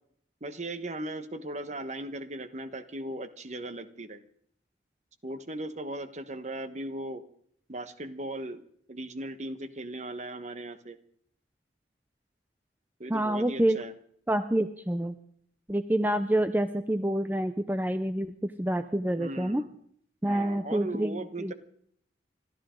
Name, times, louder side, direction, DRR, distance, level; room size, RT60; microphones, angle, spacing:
voice 1, 0.4-4.2 5.2-7.2 7.7-8.6 8.9-11.0 13.0-13.9 19.2-19.7 20.2-21.5, right 1 dB, 40° right, 10 dB, 1.2 m, -38 dB
voice 2, 13.1-13.8 14.3-15.1 15.7-19.6 20.2-21.5, right 1 dB, 10° right, 9 dB, 0.6 m, -27 dB
28.5 x 13.0 x 3.8 m, 0.65 s
head